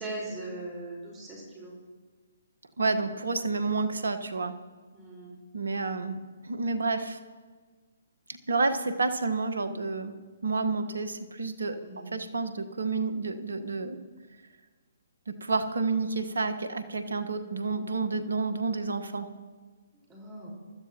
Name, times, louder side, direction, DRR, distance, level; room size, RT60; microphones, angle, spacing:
voice 1, 0.0-1.7 4.9-5.3 11.8-12.1 20.1-20.5, right 2 dB, 20° right, -3 dB, 4.7 m, -39 dB
voice 2, 2.8-4.5 5.5-7.2 8.5-10.1 10.4-11.8 12.1-14.0 15.3-19.3, right 3 dB, 75° right, 9 dB, 1.3 m, -29 dB
23.5 x 13.0 x 3.0 m, 1.4 s
figure-of-eight pair, 135°, 0 cm